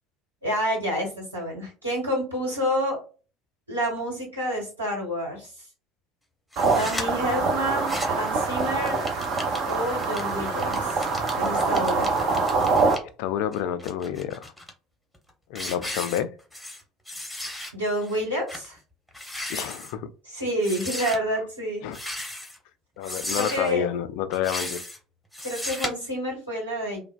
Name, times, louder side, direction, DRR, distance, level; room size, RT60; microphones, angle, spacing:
voice 1, 0.4-3.0 3.7-5.6 6.7-9.0 9.7-11.1 11.3-12.1 17.7-18.8 20.3-21.9 23.4-23.9 25.4-27.0, equal, 85° right, 1.3 m, -28 dB
sound 1, 6.5-7.0 7.7-8.3 8.6-13.0 13.5-14.7 15.1-15.3 15.5-16.8 17.1-17.7 18.1-18.2 18.5-18.7 19.1-19.9 20.6-21.2 21.9-22.6 23.0-23.7 24.3-25.0 25.3-25.9, left 1 dB, ahead, 0.8 m, -35 dB
sound 2, 6.6-13.0, right 4 dB, 50° right, 0.7 m, -25 dB
voice 2, 13.2-14.5 15.5-16.3 19.4-20.1 21.8-22.0 23.0-24.8, left 9 dB, 60° left, 0.3 m, -29 dB
3.2 x 2.2 x 2.2 m
figure-of-eight pair, 65°, 0 cm